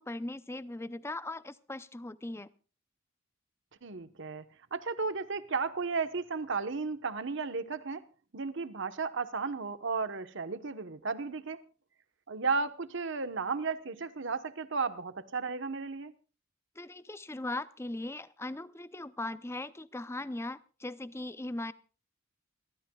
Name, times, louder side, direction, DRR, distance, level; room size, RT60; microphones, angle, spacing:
voice 1, 0.0-2.5 16.8-21.7, left 2 dB, 15° left, 0.6 m, -39 dB
voice 2, 3.8-8.0 8.3-11.6 12.3-16.1, right 4 dB, 65° right, 1.1 m, -34 dB
28.0 x 13.5 x 2.3 m
head